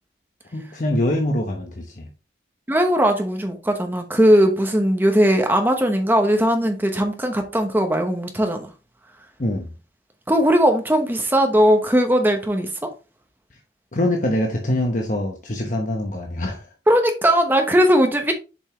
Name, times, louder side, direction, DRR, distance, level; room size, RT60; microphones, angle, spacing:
voice 1, 0.5-2.1 9.4-9.7 13.9-16.7, left 1 dB, 45° left, 1.0 m, -24 dB
voice 2, 2.7-8.7 10.3-12.9 16.9-18.3, equal, 10° right, 1.0 m, -18 dB
7.0 x 5.4 x 3.0 m
head